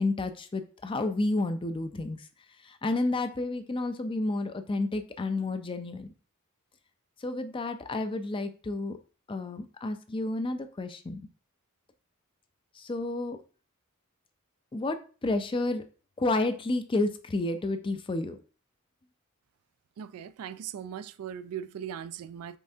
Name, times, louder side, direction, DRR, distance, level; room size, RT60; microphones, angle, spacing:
voice 1, 0.0-2.2 2.6-6.1 7.2-9.0 9.3-11.2 12.8-13.4 14.7-15.8 16.2-18.4, left 2 dB, 25° left, 0.4 m, -30 dB
voice 2, 20.0-22.6, right 9 dB, 80° right, 0.3 m, -39 dB
5.4 x 3.4 x 2.7 m
head